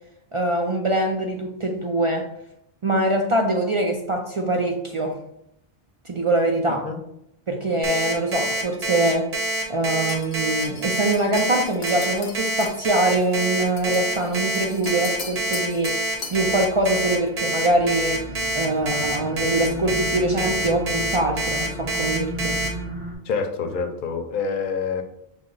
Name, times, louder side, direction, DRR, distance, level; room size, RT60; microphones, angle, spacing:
voice 1, 0.3-2.3 2.8-5.2 6.1-6.8 7.5-9.3 9.7-16.0 16.3-18.3 18.5-22.6, right 1 dB, 55° right, 2 dB, 0.3 m, -23 dB
voice 2, 6.6-7.0 23.3-25.0, left 5 dB, 60° left, 5 dB, 0.7 m, -27 dB
Alarm, 7.8-22.7, right 1 dB, 85° right, 1.1 m, -26 dB
sound 1, 10.1-16.5, left 4 dB, 90° left, 1.0 m, -39 dB
sound 2, 16.3-23.2, left 1 dB, 10° right, 0.8 m, -35 dB
5.5 x 2.0 x 3.8 m, 0.78 s
omnidirectional pair, 1.0 m